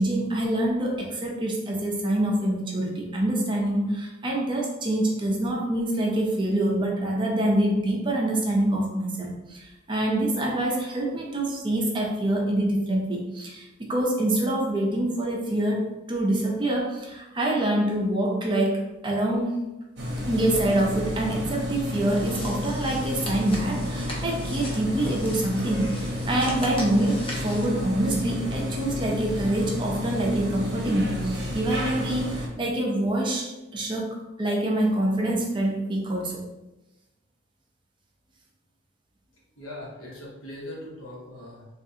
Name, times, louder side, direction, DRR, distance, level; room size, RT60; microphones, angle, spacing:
voice 1, 0.0-19.5 20.3-36.4, right 1 dB, 25° right, -1 dB, 0.4 m, -26 dB
sound 1, 20.0-32.5, left 1 dB, 55° right, 0.7 m, -31 dB
sound 2, 21.9-27.7, left 1 dB, 25° left, 0.5 m, -39 dB
voice 2, 39.6-41.7, left 1 dB, 85° left, -4 dB, 1.0 m, -40 dB
3.5 x 2.4 x 2.7 m, 1.0 s
head